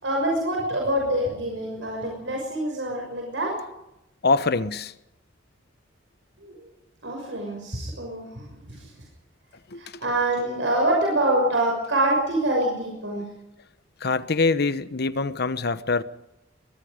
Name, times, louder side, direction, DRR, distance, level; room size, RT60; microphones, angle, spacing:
voice 1, 0.0-3.5 6.4-6.5 7.0-8.9 9.8-13.3, right 1 dB, 75° right, 6.2 m, -25 dB
voice 2, 4.2-4.9 9.7-10.0 14.0-16.0, left 3 dB, 60° left, 1.0 m, -24 dB
22.5 x 22.5 x 5.1 m
head